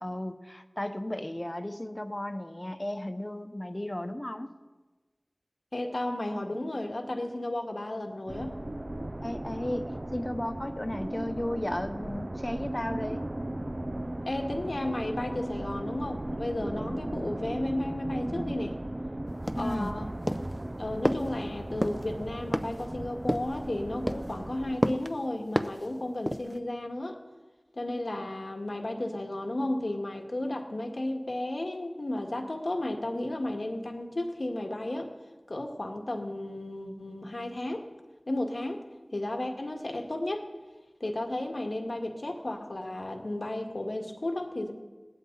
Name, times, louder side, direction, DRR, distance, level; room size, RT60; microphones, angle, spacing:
voice 1, 0.0-4.5 9.2-13.2 19.5-19.9, left 1 dB, 30° left, 8 dB, 1.0 m, -34 dB
voice 2, 5.7-8.6 14.3-18.8 19.6-20.1 20.8-27.2 27.7-35.1 35.5-37.9 38.3-38.8 39.1-40.5 41.0-44.7, left 1 dB, 85° left, 3 dB, 1.8 m, -33 dB
sound 1, 8.3-24.8, right 1 dB, 40° right, 0.6 m, -36 dB
sound 2, 19.5-19.9 20.3-20.6 21.0-21.3 21.8-22.0 22.5-22.9 23.3-23.6 24.1-24.4 24.8-25.1 25.6-25.9 26.3-26.6, equal, ahead, 0.8 m, -29 dB
21.0 x 16.5 x 4.0 m, 1.2 s
wide cardioid pair, 45°, 0 cm